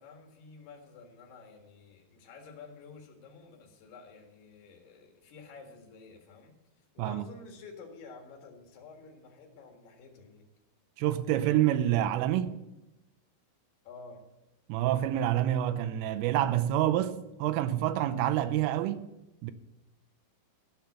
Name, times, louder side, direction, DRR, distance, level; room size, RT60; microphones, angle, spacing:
voice 1, 0.0-10.4 13.8-14.2, left 4 dB, 60° left, 3.4 m, -51 dB
voice 2, 11.0-12.6 14.7-19.1 19.4-19.5, right 12 dB, 85° right, 3.1 m, -27 dB
14.0 x 5.7 x 8.0 m
omnidirectional pair, 6.0 m